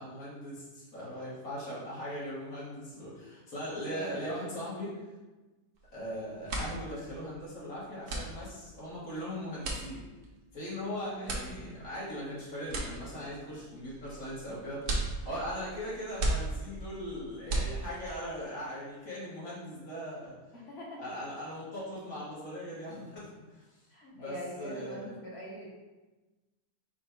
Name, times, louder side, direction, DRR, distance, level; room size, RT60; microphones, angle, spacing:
voice 1, 0.0-5.0 5.9-10.0 10.5-14.8 15.2-20.4 21.0-23.7 24.1-25.0, equal, 70° left, -8 dB, 2.0 m, -39 dB
voice 2, 3.8-4.3 11.0-11.8 20.5-21.0 23.9-25.7, equal, 50° left, -4 dB, 1.2 m, -43 dB
sound 1, 5.8-6.0 6.3-18.2, right 2 dB, 85° right, 1.4 m, -36 dB
5.1 x 2.3 x 4.5 m, 1.2 s
omnidirectional pair, 1.6 m